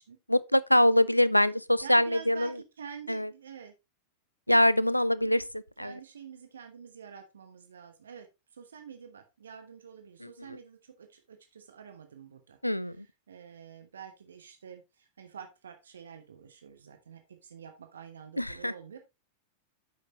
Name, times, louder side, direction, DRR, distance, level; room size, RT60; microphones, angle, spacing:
voice 1, 0.3-2.5 3.1-3.3 4.5-6.0 10.2-10.3 12.6-13.1 18.4-18.7, left 1 dB, 90° left, 0.4 m, -24 dB
voice 2, 1.8-3.7 5.8-8.3 8.5-12.6 13.3-19.0, right 7 dB, 70° right, 1.1 m, -47 dB
8.8 x 6.5 x 3.0 m
figure-of-eight pair, 90°, 0 cm